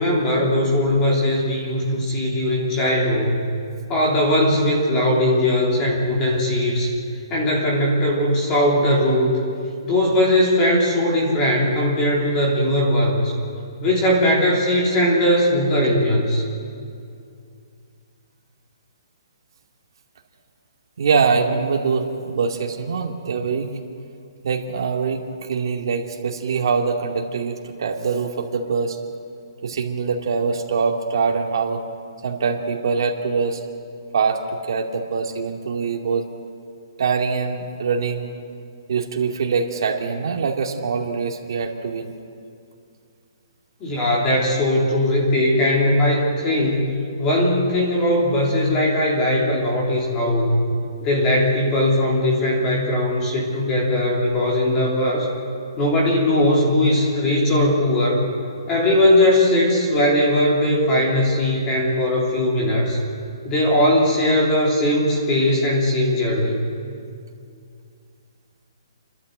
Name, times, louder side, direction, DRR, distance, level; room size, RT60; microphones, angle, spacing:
voice 1, 0.0-3.4 3.9-6.9 7.3-9.4 9.8-13.4 13.8-16.4 43.8-50.7 51.0-55.3 55.8-58.3 58.7-63.0 63.4-66.6, left 1 dB, 15° left, -3 dB, 3.2 m, -19 dB
voice 2, 21.0-23.7 24.4-29.0 29.6-31.8 32.2-33.6 34.1-36.3 37.0-38.3 38.9-42.1, right 5 dB, 55° right, 2 dB, 2.3 m, -23 dB
30.0 x 12.5 x 8.0 m, 2.4 s
hypercardioid pair, 170°, 3 cm